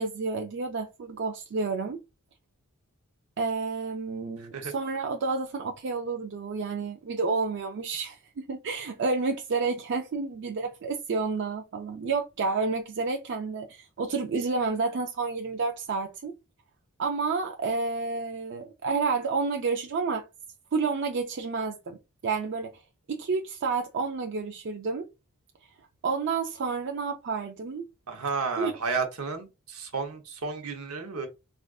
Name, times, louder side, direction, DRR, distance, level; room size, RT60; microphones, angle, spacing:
voice 1, 0.0-2.0 3.4-16.3 17.0-20.3 20.7-22.0 22.2-22.8 23.1-25.1 26.0-27.8 28.6-28.7, right 4 dB, 55° right, 0.4 m, -30 dB
voice 2, 4.4-4.7 28.1-31.3, right 4 dB, 80° right, 0.8 m, -32 dB
3.5 x 2.4 x 2.3 m
head